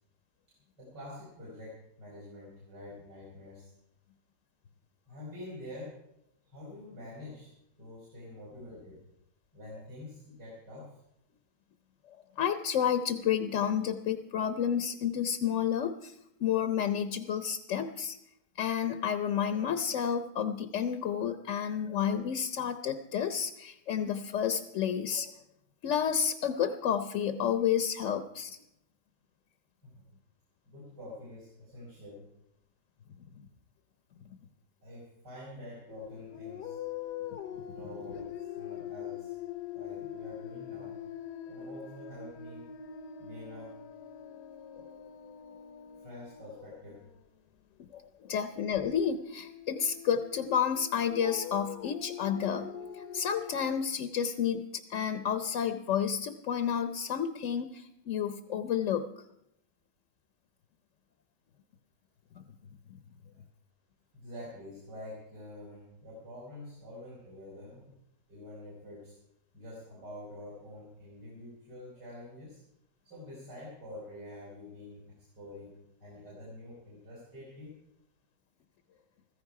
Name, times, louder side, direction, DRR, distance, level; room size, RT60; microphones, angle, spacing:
voice 1, 0.8-3.7 5.1-6.0 6.5-7.5 7.8-9.1 9.5-10.9 29.8-30.1 30.7-32.2 34.8-36.8 37.7-39.3 39.7-41.0 41.5-42.7 43.2-43.7 46.0-47.1 64.1-67.9 68.3-69.2 69.5-72.6 73.0-75.0 75.4-75.7 76.0-77.7, left 1 dB, 80° right, -7 dB, 5.5 m, -47 dB
voice 2, 12.4-16.1 16.4-18.2 18.6-25.3 25.8-28.6 44.8-44.9 47.9-52.7 52.9-59.1, left 8 dB, 60° left, 9 dB, 0.9 m, -30 dB
sound 1, 35.9-47.1 48.4-53.7, left 9 dB, 75° left, 1.3 m, -43 dB
15.5 x 14.5 x 4.7 m, 0.80 s
omnidirectional pair, 1.8 m